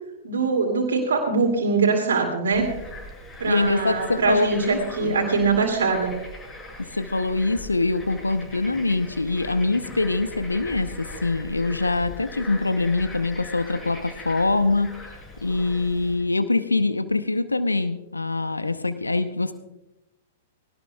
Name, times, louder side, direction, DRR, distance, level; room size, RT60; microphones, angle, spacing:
voice 1, 0.2-2.7 3.4-6.1, right 4 dB, 70° right, 0 dB, 2.5 m, -22 dB
Bird / Frog, 2.5-16.2, left 1 dB, 15° left, 4.5 m, -41 dB
voice 2, 3.4-5.1 6.9-14.9 15.4-19.5, left 3 dB, 85° left, 11 dB, 0.8 m, -24 dB
20.0 x 18.0 x 2.3 m, 0.92 s
figure-of-eight pair, 105°, 0 cm